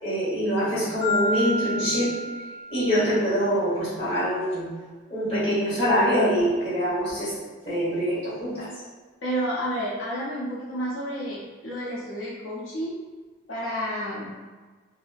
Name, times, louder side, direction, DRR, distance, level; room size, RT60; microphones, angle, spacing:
voice 1, 0.0-2.1 2.7-4.7 5.1-7.3 7.7-8.7, equal, 25° left, -11 dB, 1.2 m, -24 dB
Marimba xylophone, 1.0-3.2, left 1 dB, 60° right, 1.0 m, -29 dB
voice 2, 9.2-13.0 13.5-14.3, equal, 70° left, -7 dB, 0.6 m, -30 dB
2.7 x 2.4 x 2.4 m, 1.4 s
head